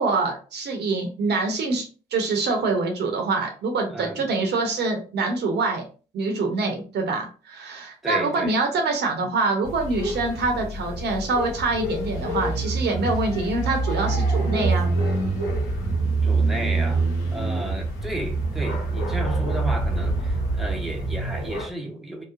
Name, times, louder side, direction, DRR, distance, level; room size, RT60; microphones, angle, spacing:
voice 1, 0.0-5.9 6.1-14.9, right 3 dB, 60° right, 0.7 m, -25 dB
voice 2, 3.9-4.2 8.0-8.6 16.2-22.2, right 1 dB, ahead, 0.8 m, -33 dB
sound 1, 9.6-21.7, right 2 dB, 75° left, 0.8 m, -25 dB
2.8 x 2.0 x 2.4 m
hypercardioid pair, 45°, 19 cm